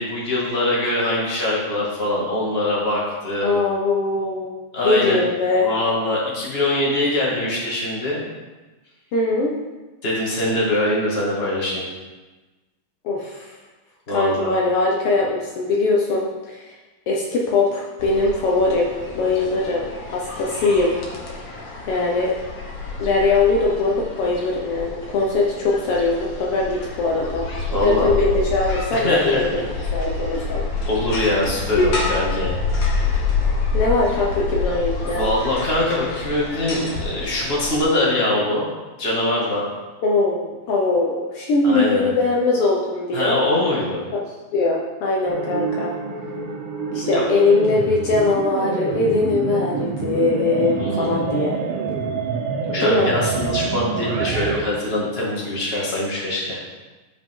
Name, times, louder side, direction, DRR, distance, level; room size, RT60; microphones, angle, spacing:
voice 1, 0.0-3.5 4.7-5.2 5.6-8.2 10.0-11.8 14.1-14.6 27.7-28.1 28.9-29.9 30.8-32.6 35.1-38.6 39.0-39.6 41.6-42.1 43.1-44.0 47.1-47.2 50.8-51.1 52.6-56.6, left 1 dB, 20° left, -5 dB, 1.6 m, -23 dB
voice 2, 3.4-4.5 4.8-5.7 9.1-9.5 13.0-13.5 14.1-16.7 17.1-19.8 20.1-20.9 21.9-22.3 23.0-27.5 27.7-29.6 29.9-30.6 31.8-32.0 33.7-35.2 40.0-43.4 44.1-44.2 44.5-45.9 46.9-51.5 52.8-53.1, left 3 dB, 85° left, -3 dB, 1.2 m, -21 dB
sound 1, 18.0-37.8, left 3 dB, 60° left, 1.2 m, -28 dB
sound 2, 45.3-54.6, right 5 dB, 80° right, 1.3 m, -26 dB
13.5 x 5.2 x 3.8 m, 1.2 s
omnidirectional pair, 4.0 m